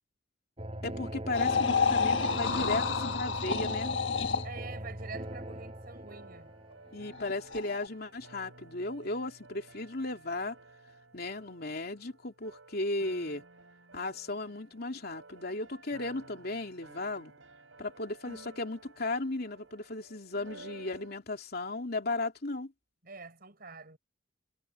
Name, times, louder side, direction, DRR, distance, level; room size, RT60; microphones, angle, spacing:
sound 1, 0.6-7.8, right 1 dB, 30° right, 6.1 m, -40 dB
voice 1, 0.8-3.9 6.9-10.6 11.1-13.4 13.9-17.3 17.8-22.7, left 2 dB, 55° left, 3.0 m, -35 dB
sound 2, 1.3-4.6 7.1-7.9, left 5 dB, 70° left, 1.3 m, -29 dB
voice 2, 4.4-6.5 23.0-24.0, right 4 dB, 50° right, 5.1 m, -46 dB
sound 3, 5.2-21.2, right 3 dB, 80° right, 5.6 m, -54 dB
head